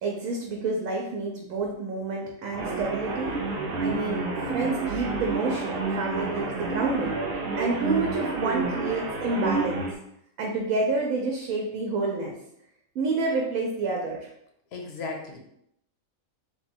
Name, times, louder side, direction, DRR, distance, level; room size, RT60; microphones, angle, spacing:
voice 1, 0.0-3.4 3.8-4.2 4.5-9.9 10.4-12.3 12.9-14.3, right 3 dB, 90° right, 0 dB, 1.0 m, -29 dB
sound 1, 2.5-9.9, right 3 dB, 55° right, 0.7 m, -29 dB
voice 2, 14.7-15.4, left 4 dB, 60° left, 2 dB, 0.8 m, -35 dB
3.0 x 2.2 x 4.2 m, 0.74 s
omnidirectional pair, 1.4 m